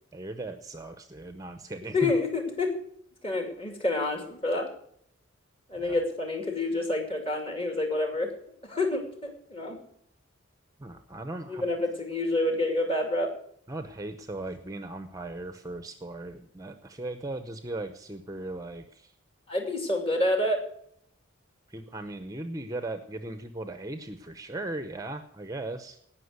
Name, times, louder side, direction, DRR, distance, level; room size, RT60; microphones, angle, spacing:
voice 1, 0.1-2.1 5.8-6.0 10.8-11.7 13.7-19.1 21.7-26.0, right 2 dB, 15° right, 8 dB, 0.7 m, -38 dB
voice 2, 1.9-2.7 3.2-4.7 5.7-8.3 8.6-9.8 11.5-13.3 19.5-20.6, left 2 dB, 25° left, 4 dB, 2.5 m, -28 dB
17.5 x 6.1 x 7.9 m, 0.67 s
head